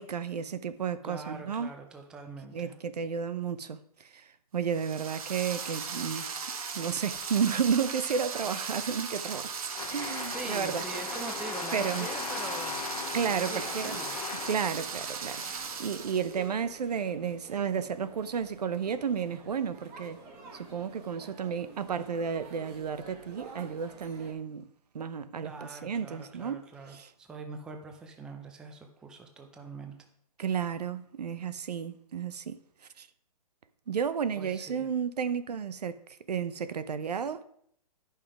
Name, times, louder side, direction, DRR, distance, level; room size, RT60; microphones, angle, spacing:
voice 1, 0.0-1.7 2.5-3.8 4.1-4.2 4.5-6.3 6.7-9.5 9.9-10.8 11.7-12.1 13.1-14.0 14.5-20.2 20.5-24.7 24.9-26.6 26.9-27.1 30.4-32.6 33.0-33.1 33.9-36.0 36.3-37.4, right 7 dB, 85° right, 0.7 m, -32 dB
voice 2, 1.0-2.8 10.3-14.2 25.4-29.9 34.4-34.9, right 4 dB, 5° right, 0.4 m, -43 dB
sound 1, 4.7-16.4, right 5 dB, 60° right, 1.3 m, -37 dB
sound 2, 9.7-15.5, left 8 dB, 75° left, 0.6 m, -39 dB
sound 3, 10.3-24.3, right 3 dB, 25° right, 1.3 m, -51 dB
9.5 x 5.7 x 4.9 m
hypercardioid pair, 155°, 20 cm